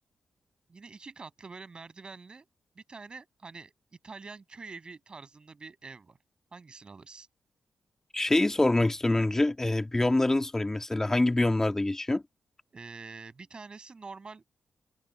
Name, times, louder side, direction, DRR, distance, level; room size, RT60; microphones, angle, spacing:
voice 1, 0.7-2.5 2.7-3.7 4.0-6.2 6.5-7.3 12.7-14.4, right 4 dB, 45° right, 6.4 m, -46 dB
voice 2, 8.1-12.2, left 2 dB, 20° left, 2.4 m, -25 dB
hypercardioid pair, 40°, 2 cm